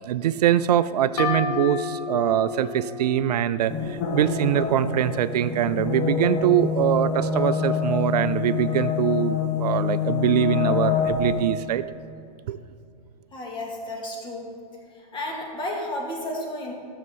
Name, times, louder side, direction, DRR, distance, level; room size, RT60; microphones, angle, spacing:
voice 1, 0.0-11.8 12.5-12.6, right 11 dB, 75° right, 15 dB, 0.4 m, -23 dB
sound 1, 1.2-4.7, left 6 dB, 75° left, 1.2 m, -32 dB
sound 2, 3.7-11.4, left 6 dB, 45° left, 1.6 m, -26 dB
voice 2, 13.3-14.5 14.9-16.7, left 1 dB, 25° left, -1 dB, 2.4 m, -32 dB
14.0 x 6.7 x 4.0 m, 2.5 s
hypercardioid pair, 115°, 21 cm